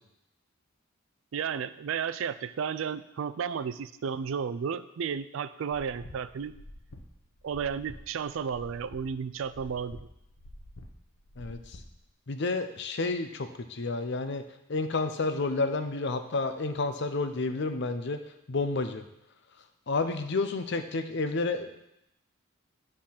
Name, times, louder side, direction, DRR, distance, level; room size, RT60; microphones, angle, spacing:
voice 1, 1.3-6.5 7.4-10.1, right 7 dB, 70° right, 14 dB, 0.4 m, -33 dB
sound 1, 5.7-12.0, left 1 dB, 85° left, 0.9 m, -49 dB
voice 2, 11.4-11.8 12.3-14.4 14.7-18.2 18.5-19.0 19.9-21.8, left 3 dB, 60° left, 8 dB, 0.6 m, -30 dB
8.8 x 3.8 x 5.8 m, 0.83 s
head